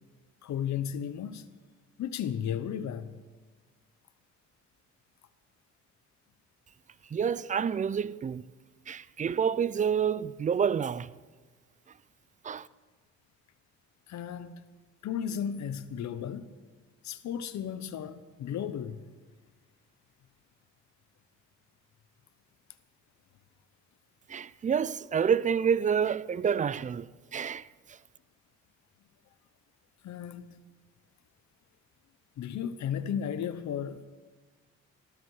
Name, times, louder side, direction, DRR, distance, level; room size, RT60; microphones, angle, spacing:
voice 1, 0.4-1.4 2.0-3.2 14.1-14.6 15.0-16.5 17.0-19.0 30.0-30.5 32.4-34.1, left 8 dB, 65° left, 0.9 m, -34 dB
voice 2, 7.1-8.4 8.9-11.1 12.4-12.7 24.3-27.1 27.3-27.7, right 7 dB, 25° right, 0.4 m, -28 dB
14.5 x 13.0 x 4.8 m
cardioid pair, 90°, 30 cm